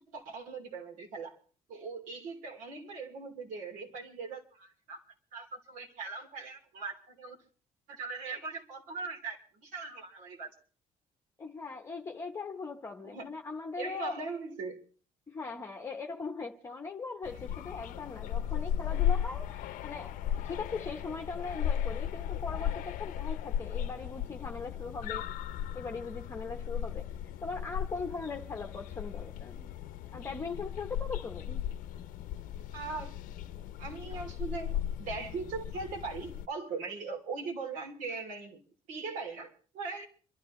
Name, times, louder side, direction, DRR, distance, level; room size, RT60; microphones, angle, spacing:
voice 1, 0.1-1.4 1.7-5.0 5.3-7.4 7.9-10.5 13.0-13.3 13.8-14.8 32.7-33.2 33.8-38.6 38.9-40.1, right 4 dB, 85° right, 3.1 m, -40 dB
voice 2, 11.4-14.2 15.3-25.2 25.7-27.1 27.4-29.7 30.1-31.6, left 4 dB, 20° left, 0.9 m, -40 dB
sound 1, 17.2-36.5, left 10 dB, 90° left, 0.6 m, -36 dB
27.0 x 12.5 x 3.1 m
cardioid pair, 155°, 13 cm